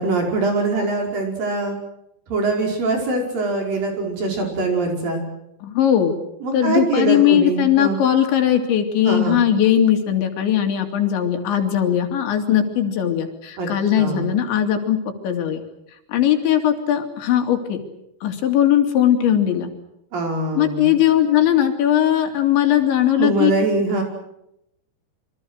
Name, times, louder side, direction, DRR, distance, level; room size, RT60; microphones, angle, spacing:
voice 1, 0.0-1.8 2.3-5.2 6.4-8.0 9.0-9.4 13.6-13.7 14.0-14.3 20.1-21.0 23.2-24.0, right 3 dB, 50° right, 1 dB, 6.8 m, -23 dB
voice 2, 5.6-6.2 6.5-15.6 16.1-17.8 18.2-19.7 20.5-23.5, left 10 dB, 85° left, 5 dB, 4.9 m, -19 dB
27.5 x 25.5 x 6.5 m, 0.81 s
omnidirectional pair, 5.1 m